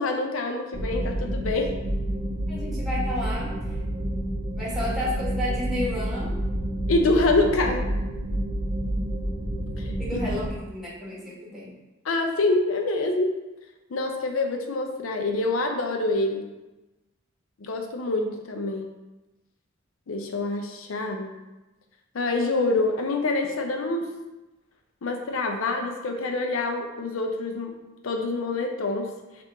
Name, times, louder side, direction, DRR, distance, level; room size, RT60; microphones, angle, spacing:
voice 1, 0.0-1.7 6.9-7.8 9.8-9.9 12.0-13.3 13.9-16.4 17.6-18.9 20.1-21.3 22.1-24.0 25.0-27.7 28.0-29.1, left 2 dB, 85° left, 4 dB, 0.6 m, -26 dB
sound 1, 0.7-10.5, right 1 dB, 30° right, 0.5 m, -29 dB
voice 2, 2.5-3.5 4.5-6.3 10.0-11.7, left 1 dB, ahead, -7 dB, 1.3 m, -31 dB
4.4 x 2.5 x 3.4 m, 1.1 s
head